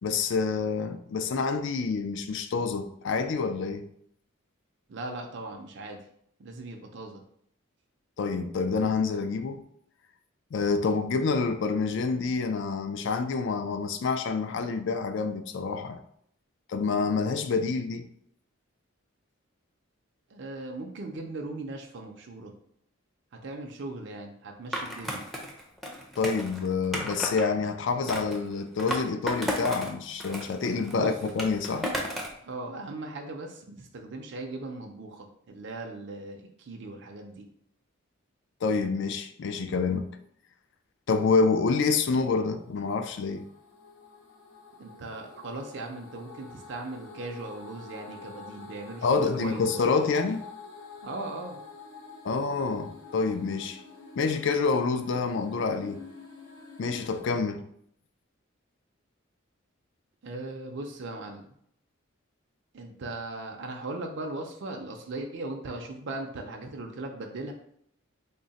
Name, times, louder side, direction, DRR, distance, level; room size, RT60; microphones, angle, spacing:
voice 1, 0.0-3.9 8.2-9.6 10.5-16.0 16.7-18.0 26.2-31.9 38.6-40.1 41.1-43.5 49.0-50.4 52.2-53.8 54.2-56.0 56.8-57.6, left 4 dB, 60° left, 0.4 m, -27 dB
voice 2, 4.9-6.0 6.4-7.2 20.3-22.5 23.3-25.2 30.9-31.2 32.4-37.5 44.8-49.8 51.0-51.6 60.2-61.5 62.7-67.5, right 2 dB, 60° right, 0.5 m, -38 dB
Skateboard, 24.7-27.5 28.1-29.9 30.2-32.4, equal, ahead, 0.5 m, -34 dB
sound 1, 42.1-57.2, left 4 dB, 80° left, 0.8 m, -48 dB
3.7 x 2.1 x 4.0 m
head